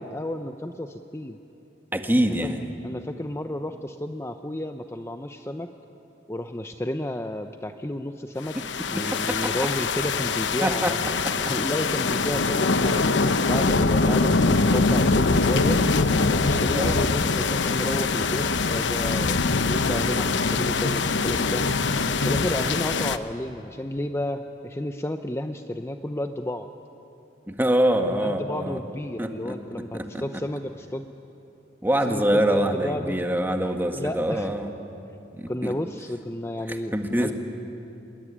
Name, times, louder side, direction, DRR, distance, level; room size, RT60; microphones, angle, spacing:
voice 1, 0.0-1.4 2.2-2.5 2.8-5.7 6.3-8.6 8.9-11.0 11.5-15.8 16.3-21.7 22.2-26.7 28.2-31.1 32.1-33.2 33.9-34.5 35.5-37.3, left 1 dB, 15° left, 7 dB, 0.7 m, -32 dB
voice 2, 1.9-2.7 8.9-9.2 10.6-10.9 11.2-11.3 16.7-17.0 19.2-19.4 27.5-28.8 29.2-29.6 29.9-30.2 31.8-34.7 35.4-35.7 36.7-37.3, right 1 dB, 10° right, 5 dB, 1.7 m, -25 dB
sound 1, 8.5-23.2, left 3 dB, 80° left, 1.0 m, -23 dB
26.0 x 21.0 x 10.0 m, 2.9 s
head